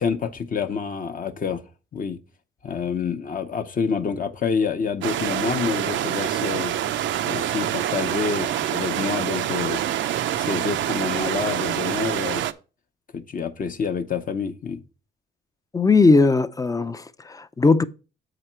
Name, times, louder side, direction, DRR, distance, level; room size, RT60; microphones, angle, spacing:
voice 1, 0.0-1.6 1.9-2.2 2.6-6.7 7.3-9.8 10.4-12.4 13.1-14.8, left 6 dB, 45° left, 0.8 m, -27 dB
sound 1, 5.0-12.5, right 11 dB, 70° right, 0.5 m, -26 dB
voice 2, 15.7-17.8, left 3 dB, 15° left, 0.5 m, -18 dB
7.2 x 5.0 x 4.4 m
cardioid pair, 90°, 20 cm